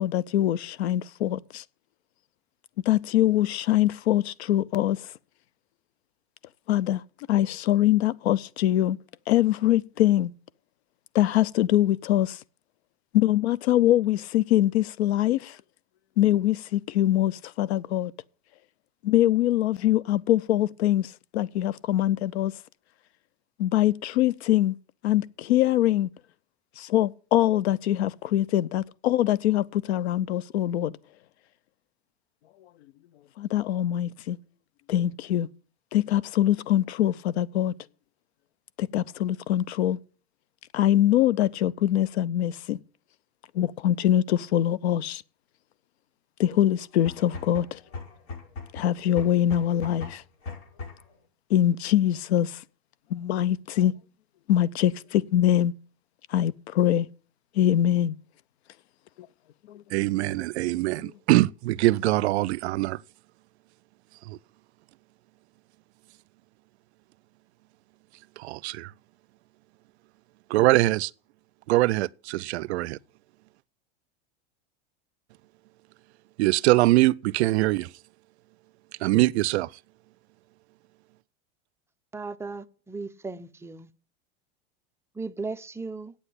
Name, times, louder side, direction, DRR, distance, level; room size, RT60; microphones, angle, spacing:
voice 1, 0.0-1.6 2.9-5.0 6.7-7.0 7.3-9.0 9.3-10.3 11.1-12.4 13.1-15.6 16.2-18.1 19.0-22.5 23.6-24.7 25.0-26.1 26.8-30.9 33.4-34.4 34.9-35.5 35.9-37.7 38.8-40.0 40.7-42.8 43.5-45.2 46.4-47.8 48.7-50.2 51.5-52.6 53.1-53.9 54.5-55.7 56.3-57.1 57.6-58.2 59.7-59.8 60.7-61.1, left 12 dB, 85° left, 0.7 m, -23 dB
sound 1, 46.9-51.2, left 4 dB, 65° left, 5.9 m, -39 dB
voice 2, 59.9-63.0 64.3-64.4 68.4-68.9 70.5-71.1 71.7-73.0 76.4-77.9 79.0-79.7, right 18 dB, 85° right, 0.5 m, -23 dB
voice 3, 82.1-83.9 85.1-86.1, right 3 dB, 10° right, 0.5 m, -36 dB
8.6 x 7.9 x 8.3 m
supercardioid pair, 125°, 32 cm